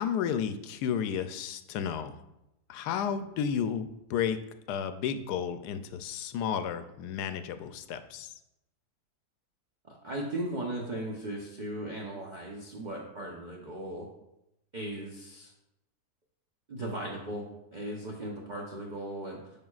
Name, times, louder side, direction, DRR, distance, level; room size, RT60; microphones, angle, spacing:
voice 1, 0.0-2.2 2.7-4.4 4.7-8.3, left 8 dB, 80° left, 10 dB, 1.1 m, -32 dB
voice 2, 9.9-14.1 14.7-15.5 16.7-17.5 17.7-19.4, right 1 dB, 35° right, -3 dB, 0.8 m, -37 dB
11.0 x 5.1 x 2.4 m, 0.87 s
omnidirectional pair, 1.7 m